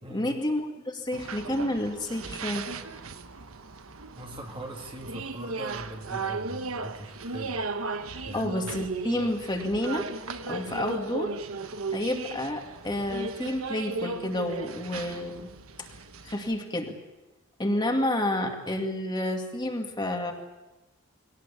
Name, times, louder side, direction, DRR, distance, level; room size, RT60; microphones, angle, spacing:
voice 1, 0.1-2.7 8.3-10.1 10.5-11.3 11.9-15.5 16.2-16.9 17.6-20.3, left 1 dB, 20° left, 2 dB, 2.3 m, -30 dB
sound 1, 1.1-16.6, right 3 dB, 85° right, 1.2 m, -36 dB
voice 2, 4.2-7.6 8.3-8.7, right 1 dB, 25° right, 2 dB, 2.2 m, -41 dB
22.0 x 18.0 x 8.6 m, 1.1 s
head